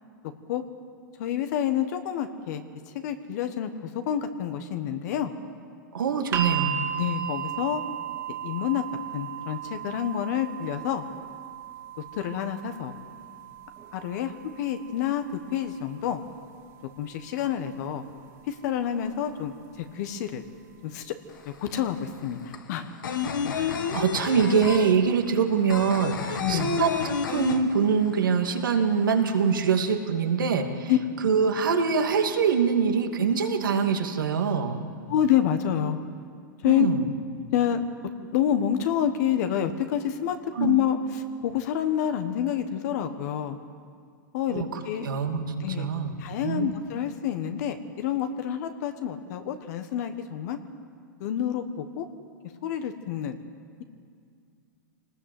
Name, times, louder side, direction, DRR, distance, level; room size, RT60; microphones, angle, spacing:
voice 1, 1.2-5.3 7.0-7.8 8.4-8.8 9.1-11.0 12.2-12.9 13.9-14.3 14.6-15.2 15.5-16.2 17.0-18.0 18.5-20.4 20.8-21.1 21.4-22.9 26.4-26.7 30.9-31.0 35.1-36.0 36.6-36.9 37.5-37.8 38.3-43.6 44.3-45.1 45.6-45.9 46.2-50.6 51.2-52.1 52.6-53.4, left 10 dB, 55° left, 8 dB, 1.4 m, -28 dB
voice 2, 5.9-6.7 23.5-30.9 31.2-34.8 36.6-37.0 40.5-40.8 44.5-46.1 46.4-46.7, right 6 dB, 85° right, 4 dB, 2.5 m, -24 dB
sound 1, 6.3-18.4 19.5-19.6, right 10 dB, 30° right, 2.3 m, -36 dB
sound 2, 21.3-21.4 21.6-28.2 28.5-28.6 28.9-29.7, left 7 dB, 80° left, 1.9 m, -30 dB
25.0 x 19.5 x 7.9 m, 2.2 s
hypercardioid pair, 130°, 11 cm